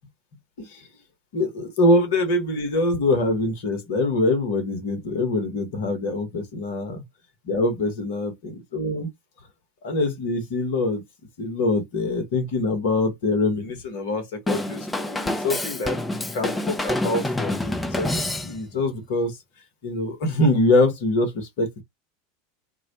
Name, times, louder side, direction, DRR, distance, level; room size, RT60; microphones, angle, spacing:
voice 1, 1.3-7.0 7.4-9.1 9.8-11.0 11.4-19.4 19.8-21.8, left 2 dB, 60° left, 0.9 m, -24 dB
Drum kit / Drum, 14.5-18.8, left 1 dB, 10° left, 0.5 m, -27 dB
2.3 x 2.0 x 2.8 m
figure-of-eight pair, 85°, 0 cm